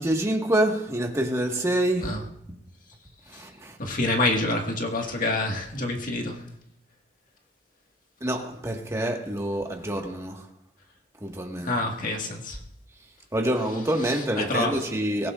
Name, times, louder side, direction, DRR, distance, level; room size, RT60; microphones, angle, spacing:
voice 1, 0.0-2.2 3.3-3.8 8.2-10.4 11.2-11.7 13.3-15.3, right 1 dB, 15° right, 1.6 m, -26 dB
voice 2, 3.8-6.4 11.6-12.6 14.4-14.8, left 2 dB, 45° left, 1.8 m, -27 dB
23.5 x 16.5 x 2.5 m
head